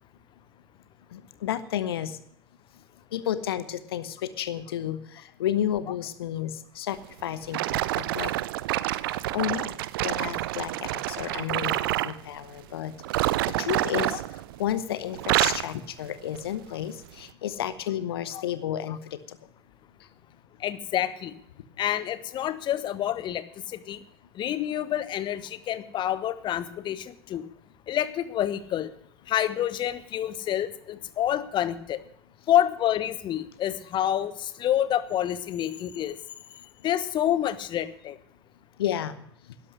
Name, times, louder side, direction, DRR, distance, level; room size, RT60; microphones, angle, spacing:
voice 1, 1.1-2.2 3.1-8.3 9.3-9.8 10.0-12.9 13.2-13.3 13.6-14.2 14.6-19.2 38.8-39.1, left 11 dB, 65° left, 14 dB, 1.0 m, -31 dB
sound 1, 7.5-12.2 13.0-14.8 15.1-15.7 16.3-16.6 17.2-17.3, right 16 dB, 60° right, 0.5 m, -28 dB
voice 2, 20.6-21.3 21.8-24.0 24.4-27.5 27.9-28.9 29.3-32.0 32.5-36.2 36.8-38.2, left 11 dB, 35° left, 15 dB, 1.0 m, -28 dB
12.0 x 11.0 x 6.3 m, 0.69 s
figure-of-eight pair, 75°, 13 cm